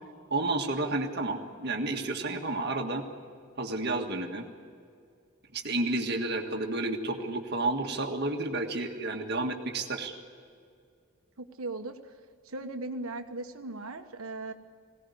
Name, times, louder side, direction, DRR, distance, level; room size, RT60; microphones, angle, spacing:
voice 1, 0.3-3.0 3.6-4.5 5.5-10.1, right 2 dB, 50° right, 2 dB, 1.8 m, -31 dB
voice 2, 11.4-12.1 12.4-14.5, right 2 dB, 75° right, 6 dB, 1.3 m, -38 dB
21.5 x 17.5 x 9.4 m, 2.2 s
head